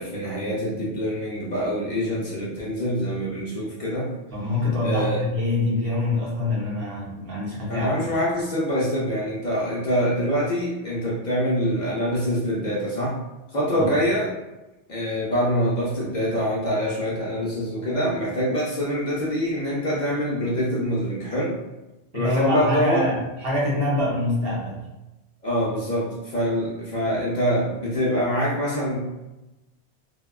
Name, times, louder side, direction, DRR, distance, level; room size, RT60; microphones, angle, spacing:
voice 1, 0.0-4.1 4.8-5.2 7.7-13.2 13.5-14.3 14.9-21.6 22.1-23.1 25.4-29.0, equal, 50° left, -6 dB, 0.6 m, -25 dB
voice 2, 4.3-8.1 13.8-13.9 22.1-24.8, left 1 dB, 60° right, -5 dB, 1.0 m, -25 dB
2.8 x 2.2 x 2.3 m, 1.0 s
omnidirectional pair, 1.1 m